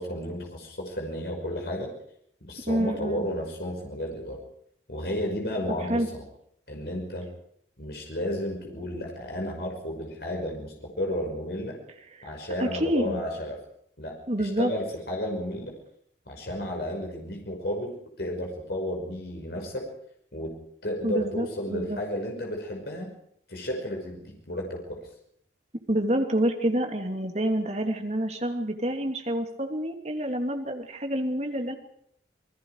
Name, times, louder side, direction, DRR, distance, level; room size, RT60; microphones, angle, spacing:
voice 1, 0.0-1.9 2.4-4.4 4.9-6.0 6.7-7.3 7.8-11.8 12.2-13.6 14.0-15.7 16.3-19.9 20.3-20.5 20.8-23.1 23.5-25.0, left 1 dB, 65° left, 1 dB, 5.7 m, -32 dB
voice 2, 2.7-3.3 5.9-6.1 12.2-12.3 12.6-13.2 14.3-14.7 21.0-22.0 25.9-31.8, right 1 dB, 40° right, 4 dB, 2.9 m, -27 dB
28.0 x 20.5 x 5.0 m, 0.68 s
head